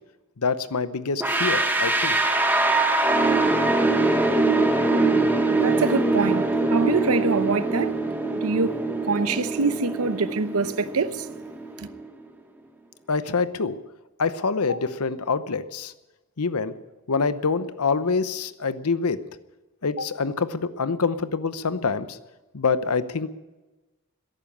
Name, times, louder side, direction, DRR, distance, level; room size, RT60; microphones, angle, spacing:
voice 1, 0.4-2.4 13.1-13.8 14.2-15.9 16.4-16.7 17.1-19.2 19.8-22.2 22.5-23.3, left 4 dB, 90° left, 0.8 m, -26 dB
sound 1, 1.2-12.1, right 2 dB, 10° right, 1.3 m, -23 dB
voice 2, 5.6-8.0 8.3-8.8 9.1-11.3 11.8-11.9, right 4 dB, 75° right, 0.9 m, -25 dB
14.0 x 11.0 x 8.7 m
head